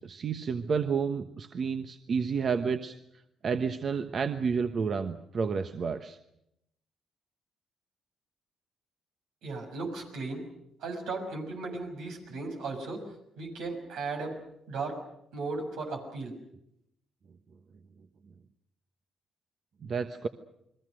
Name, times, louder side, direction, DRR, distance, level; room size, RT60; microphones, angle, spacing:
voice 1, 0.0-2.9 3.4-6.2 19.8-20.3, right 6 dB, 50° right, 8 dB, 1.1 m, -30 dB
voice 2, 9.4-10.4 10.8-13.0 13.4-14.4 14.7-15.0 15.3-16.3, right 3 dB, 85° right, 3 dB, 6.4 m, -36 dB
29.5 x 21.5 x 6.4 m, 0.78 s
cardioid pair, 90°, 0 cm